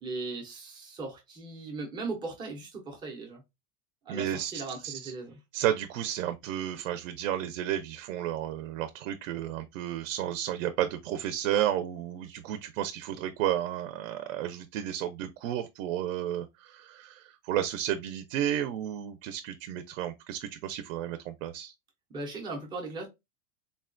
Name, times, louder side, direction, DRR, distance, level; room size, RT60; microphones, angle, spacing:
voice 1, 0.0-3.4 4.1-5.4 22.1-23.1, right 3 dB, 10° right, 0.4 m, -38 dB
voice 2, 4.1-4.5 4.8-5.1 5.5-21.7, right 11 dB, 65° right, 0.5 m, -32 dB
3.8 x 2.2 x 2.4 m
supercardioid pair, 165°, 41 cm